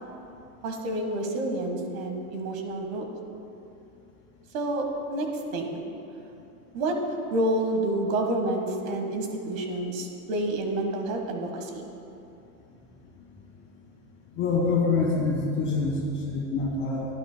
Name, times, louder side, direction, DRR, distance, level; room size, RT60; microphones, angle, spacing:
voice 1, 0.6-3.1 4.5-5.8 6.7-7.0 7.3-11.9, right 1 dB, 70° right, 3 dB, 1.6 m, -29 dB
voice 2, 14.3-17.1, left 3 dB, 30° left, -3 dB, 2.2 m, -26 dB
17.0 x 10.5 x 2.2 m, 2.8 s
supercardioid pair, 165°, 41 cm